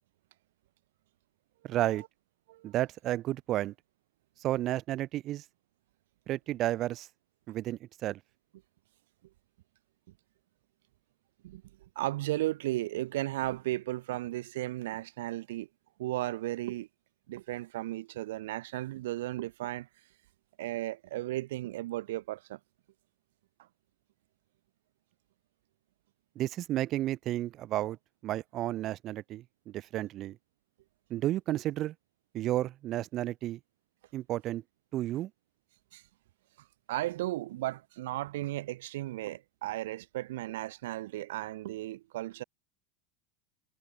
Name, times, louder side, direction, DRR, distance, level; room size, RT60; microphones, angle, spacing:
voice 1, 1.6-2.0 2.6-3.7 4.4-5.4 6.3-7.1 7.5-8.2 26.3-28.0 28.2-30.4 31.1-31.9 32.3-33.6 34.1-34.6 34.9-35.3, right 14 dB, 40° right, 1.2 m, -32 dB
voice 2, 12.0-15.7 16.0-16.9 17.3-19.9 20.6-22.6 35.9-36.0 36.9-42.4, right 16 dB, 85° right, 0.5 m, -35 dB
supercardioid pair, 135°, 0 cm